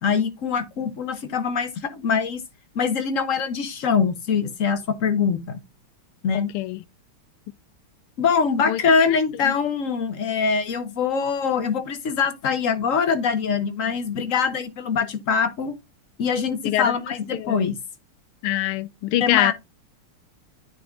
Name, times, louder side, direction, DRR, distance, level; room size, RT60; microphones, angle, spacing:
voice 1, 0.0-2.4 2.7-5.6 6.2-6.5 8.2-15.7 16.2-17.8 19.2-19.5, left 6 dB, 50° left, 1.1 m, -23 dB
voice 2, 6.3-6.8 8.7-8.8 9.1-9.2 9.4-9.5 16.6-16.9 17.3-17.8 18.4-19.5, left 14 dB, 90° left, 1.5 m, -24 dB
9.6 x 4.2 x 3.6 m
omnidirectional pair, 2.4 m